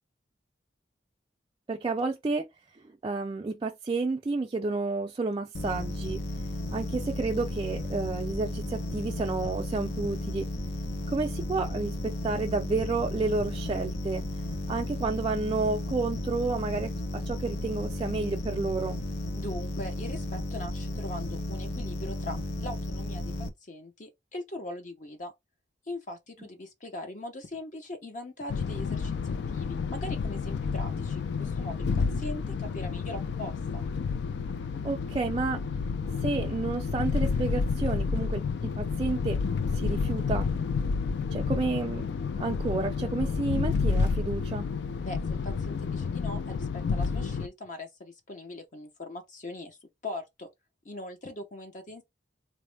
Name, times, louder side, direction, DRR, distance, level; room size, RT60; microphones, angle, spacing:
voice 1, 1.7-2.5 2.7-6.2 6.7-10.5 11.1-14.2 14.7-19.0 34.8-35.6 36.2-39.4 39.7-40.5 41.3-42.1 42.4-44.7, right 3 dB, 25° right, 0.3 m, -31 dB
sound 1, 5.5-23.5, left 1 dB, 90° left, 0.7 m, -34 dB
voice 2, 19.3-25.3 25.9-33.8 45.0-49.8 50.0-50.5 50.8-52.0, left 1 dB, 45° left, 0.7 m, -41 dB
sound 2, 28.5-47.5, left 5 dB, 65° left, 0.3 m, -30 dB
4.0 x 2.0 x 3.2 m
head